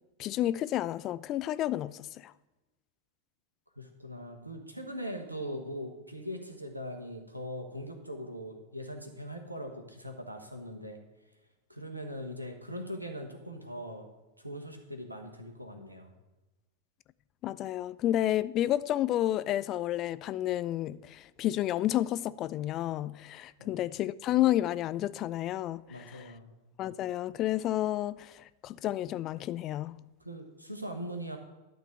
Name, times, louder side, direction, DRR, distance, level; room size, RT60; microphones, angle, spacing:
voice 1, 0.2-2.3 17.4-26.3 26.8-30.0, left 13 dB, 35° left, 0.3 m, -31 dB
voice 2, 3.8-11.0 11.7-14.1 14.4-16.1 23.6-23.8 25.9-26.5 30.2-31.4, equal, 85° right, 1.3 m, -41 dB
11.5 x 4.0 x 7.9 m
figure-of-eight pair, 90°, 0 cm